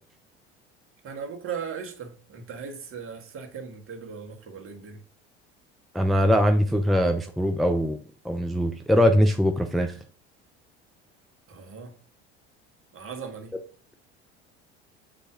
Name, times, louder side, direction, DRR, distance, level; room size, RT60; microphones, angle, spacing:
voice 1, 1.0-5.0 11.5-11.9 12.9-13.5, right 6 dB, 40° right, 4 dB, 1.6 m, -38 dB
voice 2, 5.9-8.0 8.2-9.9 13.5-13.6, equal, ahead, 5 dB, 0.6 m, -22 dB
7.6 x 4.2 x 3.8 m, 0.41 s
hypercardioid pair, 75°, 33 cm